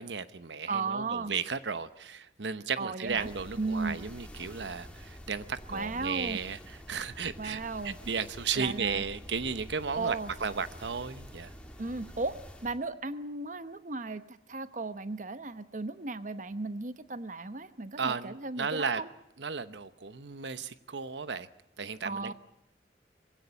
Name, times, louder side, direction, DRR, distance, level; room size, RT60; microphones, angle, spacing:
voice 1, 0.0-11.5 18.0-19.0 19.4-21.5 21.8-22.3, right 5 dB, 85° right, 13 dB, 0.9 m, -34 dB
voice 2, 0.7-1.3 2.8-3.3 3.6-4.0 5.7-6.4 7.4-8.0 8.5-9.0 10.0-10.3 11.8-19.1 22.0-22.3, right 3 dB, 45° right, 12 dB, 0.9 m, -35 dB
sound 1, 3.0-12.8, equal, 5° left, 2.6 m, -48 dB
21.5 x 16.5 x 9.9 m, 0.85 s
head